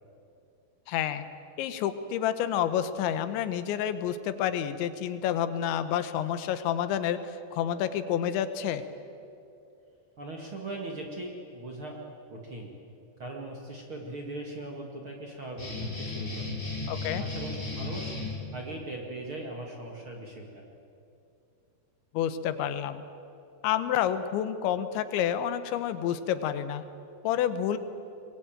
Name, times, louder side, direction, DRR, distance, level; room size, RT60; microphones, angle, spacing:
voice 1, 0.9-1.2 1.6-8.8 16.9-17.2 22.1-23.0 23.6-26.8 27.2-27.8, left 10 dB, 85° left, 11 dB, 3.4 m, -29 dB
voice 2, 10.2-12.0 12.3-12.7 13.2-16.6 17.2-18.2 18.5-20.6, right 2 dB, 40° right, 0 dB, 2.1 m, -39 dB
sound 1, 15.6-18.3, left 3 dB, 15° left, 5.3 m, -35 dB
23.0 x 22.0 x 9.0 m, 2.6 s
omnidirectional pair, 5.1 m